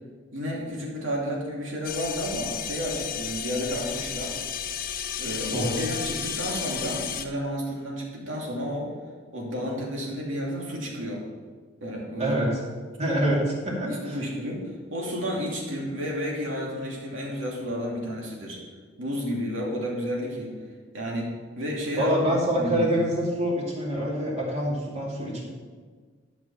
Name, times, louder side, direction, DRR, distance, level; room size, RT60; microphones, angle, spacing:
voice 1, 0.3-4.4 5.2-8.9 9.3-11.3 11.8-12.4 13.1-13.2 13.8-14.6 14.9-18.6 19.0-20.5 20.9-22.2 22.6-22.9, equal, 90° right, -2 dB, 2.7 m, -31 dB
sound 1, 1.8-7.3, left 8 dB, 50° left, 0.7 m, -33 dB
voice 2, 5.5-5.8 12.2-12.6 13.0-14.2 22.0-25.5, equal, 35° right, -3 dB, 2.6 m, -26 dB
11.5 x 6.1 x 5.6 m, 1.5 s
head